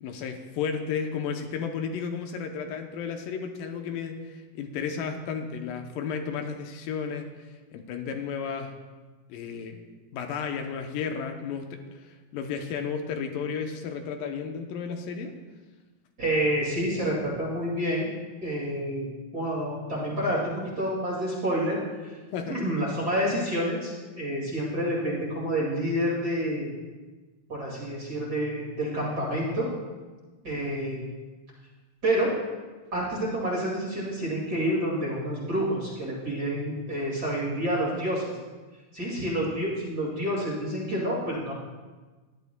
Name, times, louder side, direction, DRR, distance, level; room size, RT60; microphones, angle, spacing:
voice 1, 0.0-7.3 7.7-8.7 9.3-9.8 10.1-11.8 12.3-15.3 22.3-22.6, left 6 dB, 80° left, 5 dB, 2.4 m, -33 dB
voice 2, 16.2-18.1 18.4-19.1 19.3-21.8 22.0-22.2 22.5-26.7 27.5-29.7 30.4-31.0 32.0-32.3 32.9-38.2 38.9-41.5, equal, 35° right, -5 dB, 2.2 m, -28 dB
17.0 x 11.0 x 2.2 m, 1.3 s
omnidirectional pair, 4.0 m